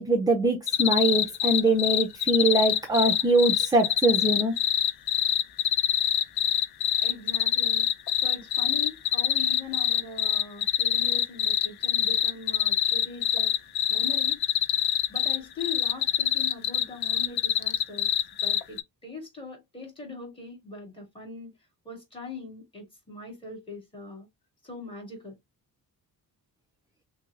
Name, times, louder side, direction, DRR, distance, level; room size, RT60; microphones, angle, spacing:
voice 1, 0.0-4.5, right 2 dB, 10° right, 0.4 m, -23 dB
sound 1, 0.7-18.8, left 11 dB, 85° left, 0.7 m, -24 dB
voice 2, 7.0-7.9 8.2-13.6 13.9-14.4 15.1-18.1 18.4-21.5 21.9-24.3 24.6-25.3, left 3 dB, 15° left, 1.7 m, -41 dB
5.9 x 2.0 x 2.4 m
cardioid pair, 170°, 37 cm